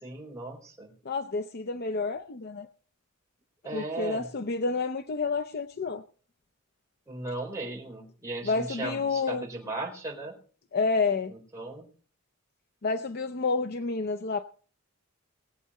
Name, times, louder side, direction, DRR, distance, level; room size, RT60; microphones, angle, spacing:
voice 1, 0.0-0.9 3.6-4.3 7.1-10.3 11.3-11.9, right 2 dB, 15° right, -2 dB, 4.1 m, -37 dB
voice 2, 1.0-2.7 3.7-6.0 8.4-9.4 10.7-11.3 12.8-14.4, left 4 dB, 50° left, 10 dB, 0.6 m, -29 dB
20.5 x 8.4 x 4.2 m, 0.42 s
head